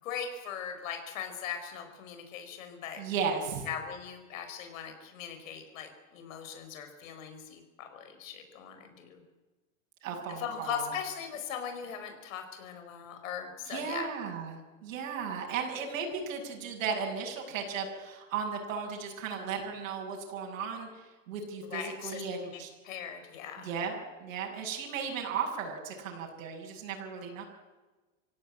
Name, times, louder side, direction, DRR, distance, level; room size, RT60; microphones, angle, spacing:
voice 1, 0.0-3.0 3.6-9.2 10.4-14.1 21.7-23.7, left 8 dB, 90° left, 7 dB, 4.9 m, -40 dB
voice 2, 3.0-3.7 10.0-10.9 13.7-22.7 23.6-27.4, right 6 dB, 85° right, 0 dB, 6.6 m, -35 dB
26.5 x 16.5 x 8.7 m, 1.2 s
supercardioid pair, 145°, 38 cm